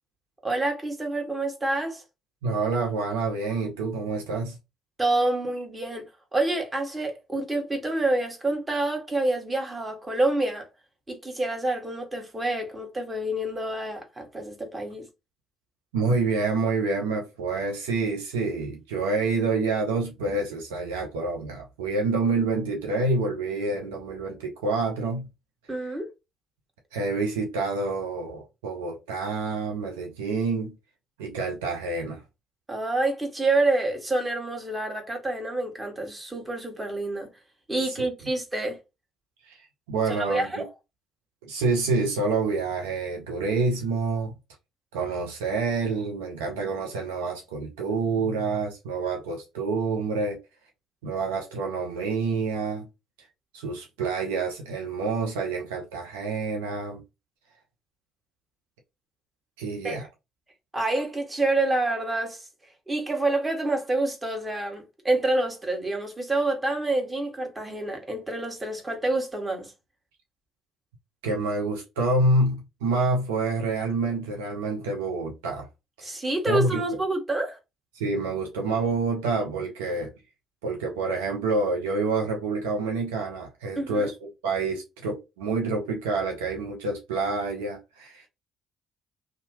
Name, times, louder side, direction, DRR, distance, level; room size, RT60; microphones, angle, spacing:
voice 1, 0.4-2.0 5.0-6.1 6.3-10.6 11.1-15.1 25.7-26.1 32.7-37.3 37.7-38.8 40.1-40.6 59.8-60.0 60.7-62.5 62.9-69.7 76.0-77.6 83.7-84.1, right 2 dB, 20° right, 1.3 m, -27 dB
voice 2, 2.4-4.6 15.9-25.3 26.9-30.7 31.2-32.2 37.9-38.0 39.5-39.6 39.9-40.6 41.5-44.3 44.9-50.4 51.0-52.9 53.5-57.0 59.6-60.1 71.2-75.7 76.0-76.1 76.5-77.0 77.9-80.1 80.6-84.1 84.4-88.3, right 3 dB, 80° right, 0.6 m, -27 dB
2.7 x 2.3 x 2.8 m
hypercardioid pair, 45°, 0 cm